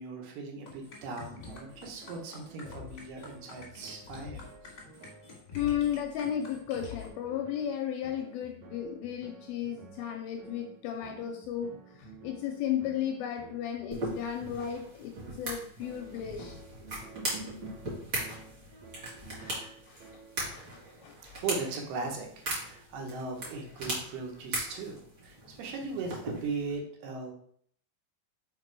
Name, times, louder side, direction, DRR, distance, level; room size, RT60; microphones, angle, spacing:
voice 1, 0.0-4.7 21.2-27.3, right 4 dB, 75° right, 2 dB, 2.9 m, -38 dB
sound 1, 0.7-7.1, left 6 dB, 50° left, 1.3 m, -46 dB
sound 2, 1.4-20.5, right 4 dB, 55° right, 1.8 m, -53 dB
voice 2, 5.5-16.6 19.4-19.6 19.9-20.2 20.5-20.7 21.0-21.4, left 9 dB, 85° left, 4 dB, 2.2 m, -34 dB
sound 3, 13.9-26.8, right 1 dB, 35° right, 2.2 m, -39 dB
5.9 x 4.7 x 4.6 m, 0.62 s
omnidirectional pair, 4.8 m